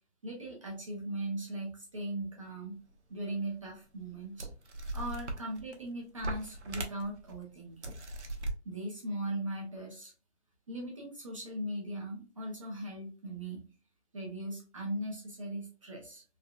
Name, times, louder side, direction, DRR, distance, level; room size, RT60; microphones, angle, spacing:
voice 1, 0.2-2.8 3.1-4.5 4.9-7.8 8.6-10.1 10.7-13.6 14.1-16.2, right 1 dB, 30° right, -1 dB, 0.6 m, -39 dB
sound 1, 3.3-3.4 4.1-4.2 4.4-5.8 6.2-7.3 7.8-8.5, right 1 dB, 80° right, 0.8 m, -39 dB
3.5 x 2.1 x 2.2 m, 0.35 s
hypercardioid pair, 160°, 34 cm